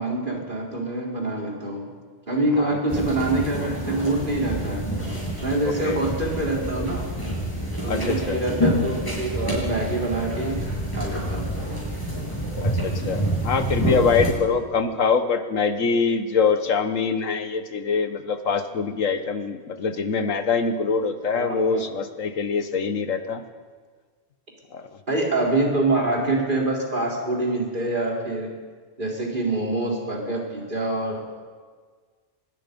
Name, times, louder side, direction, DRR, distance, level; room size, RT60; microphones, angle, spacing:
voice 1, 0.0-1.9 2.3-4.9 5.4-7.1 7.8-10.7 10.9-11.5 21.3-21.9 25.1-28.5 29.0-31.4, right 2 dB, 40° right, -2 dB, 4.3 m, -25 dB
voice 2, 2.6-3.0 5.7-6.0 7.9-8.4 12.6-23.4 24.7-24.9, left 5 dB, 90° left, 9 dB, 1.7 m, -24 dB
sound 1, 2.9-14.3, equal, 15° left, 7.9 m, -27 dB
24.5 x 21.0 x 5.4 m, 1.5 s
omnidirectional pair, 1.3 m